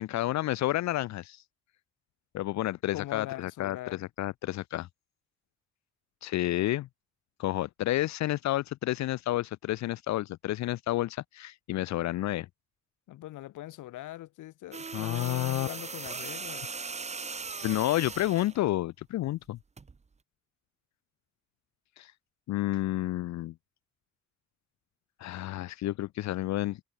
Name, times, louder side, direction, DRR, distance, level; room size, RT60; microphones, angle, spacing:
voice 1, 0.0-1.4 2.3-4.9 6.2-6.9 7.4-12.5 14.9-15.7 17.6-19.6 22.0-22.1 22.5-23.5 25.2-26.8, left 15 dB, 65° left, 0.5 m, -30 dB
voice 2, 2.9-4.0 13.1-16.7, left 15 dB, 85° left, 1.7 m, -42 dB
sound 1, 14.7-18.6 19.8-20.0, right 4 dB, 20° right, 1.0 m, -39 dB
cardioid pair, 90°, 30 cm